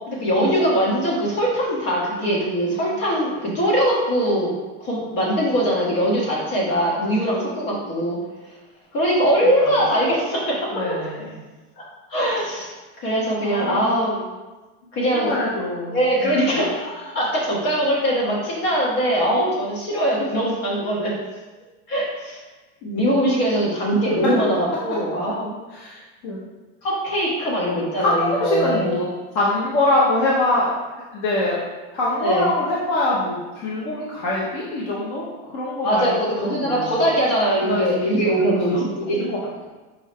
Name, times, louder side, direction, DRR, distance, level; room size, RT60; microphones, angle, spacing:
voice 1, 0.1-4.5 4.8-8.2 8.9-10.7 11.8-11.9 12.1-14.2 14.9-15.3 15.9-21.1 21.9-22.4 22.8-25.5 26.8-28.9 32.2-32.5 35.8-39.2, equal, 60° left, -4 dB, 1.3 m, -22 dB
voice 2, 10.7-11.3 13.4-14.0 15.0-16.6 20.2-20.3 25.7-26.4 28.0-29.1 29.3-30.7 31.1-31.6 31.9-35.2 35.5-37.0 37.7-37.8 38.4-39.4, left 2 dB, 35° left, -5 dB, 0.5 m, -24 dB
4.6 x 2.1 x 3.3 m, 1.2 s
cardioid pair, 180°, 34 cm